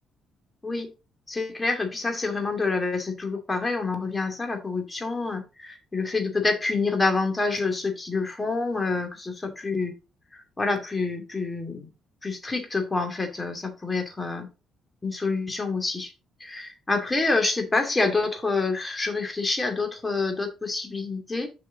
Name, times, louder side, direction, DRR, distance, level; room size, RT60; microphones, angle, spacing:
voice 1, 1.3-9.9 10.3-11.9 12.2-14.5 15.0-16.1 16.4-21.5, left 3 dB, 25° left, 5 dB, 2.5 m, -27 dB
6.8 x 6.2 x 3.8 m, 0.29 s
supercardioid pair, 75°, 0 cm